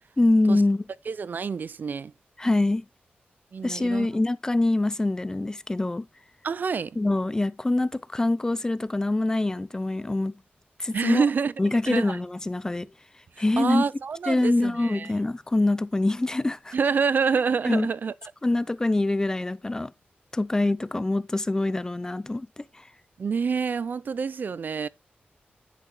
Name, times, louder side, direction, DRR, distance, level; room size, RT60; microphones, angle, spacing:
voice 1, 0.2-0.8 2.4-2.8 3.6-6.1 7.0-10.3 10.8-11.2 11.6-12.9 13.4-13.8 14.3-16.7 17.6-17.9 18.4-19.9 20.3-22.6, left 2 dB, 15° left, 0.5 m, -24 dB
voice 2, 1.1-2.1 3.5-4.1 6.4-7.0 10.9-11.5 11.9-12.2 13.6-15.1 16.7-18.1 23.2-24.9, right 5 dB, 55° right, 0.5 m, -27 dB
10.0 x 8.5 x 2.2 m
wide cardioid pair, 115°, 4 cm